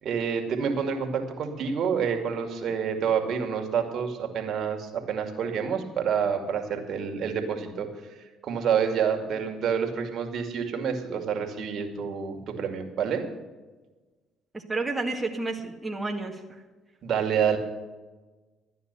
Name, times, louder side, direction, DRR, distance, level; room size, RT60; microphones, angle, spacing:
voice 1, 0.0-7.9 8.4-13.2 17.0-17.6, right 7 dB, 60° right, 4 dB, 2.3 m, -28 dB
voice 2, 14.5-16.6, right 3 dB, 20° right, 2 dB, 1.9 m, -31 dB
12.5 x 9.6 x 6.9 m, 1.3 s
supercardioid pair, 70°, 0 cm